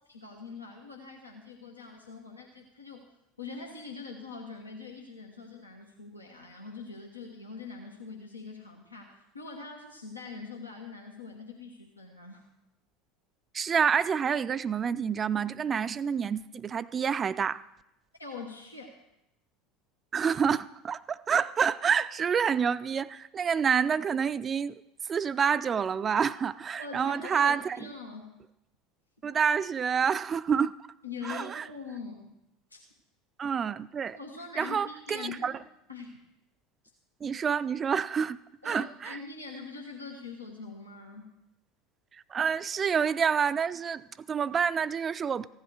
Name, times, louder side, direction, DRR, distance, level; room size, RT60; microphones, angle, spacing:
voice 1, 0.1-3.0 3.4-12.4 18.2-19.0 26.8-28.4 31.0-32.3 32.7-32.8 34.1-35.6 35.9-36.2 38.6-41.3, left 4 dB, 85° left, 1.2 m, -43 dB
voice 2, 13.5-17.6 20.1-24.7 25.1-27.8 29.2-30.7 31.2-31.7 33.4-34.2 34.6-35.5 37.2-38.4 38.6-39.2 42.3-45.5, right 7 dB, 30° right, 0.4 m, -28 dB
15.5 x 10.5 x 4.8 m
figure-of-eight pair, 70°, 0 cm